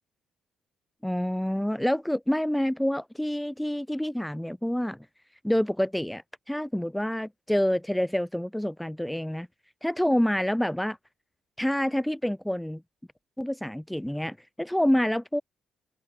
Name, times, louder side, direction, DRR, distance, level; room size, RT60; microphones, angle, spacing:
voice 1, 1.0-5.0 5.4-9.5 9.8-11.0 11.6-12.8 13.4-15.4, equal, 5° left, 4.1 m, -27 dB
cardioid pair, 90°, 0 cm